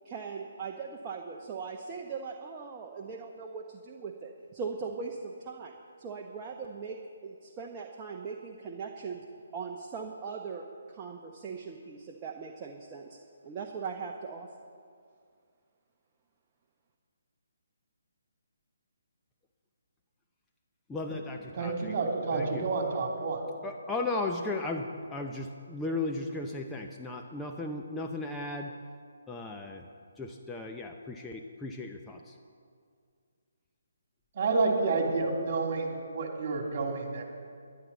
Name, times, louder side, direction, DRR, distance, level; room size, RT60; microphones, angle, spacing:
voice 1, 0.0-7.0 7.2-9.2 9.5-13.2 13.4-14.5, right 5 dB, 25° right, 0 dB, 1.0 m, -40 dB
voice 2, 20.9-22.0 22.3-23.0 23.4-28.7 29.3-29.9 30.2-32.4, left 2 dB, 10° left, 1 dB, 0.7 m, -36 dB
voice 3, 21.6-23.4 34.3-37.2, right 3 dB, 40° right, 1 dB, 2.7 m, -29 dB
21.0 x 11.5 x 4.1 m, 2.2 s
figure-of-eight pair, 140°, 0 cm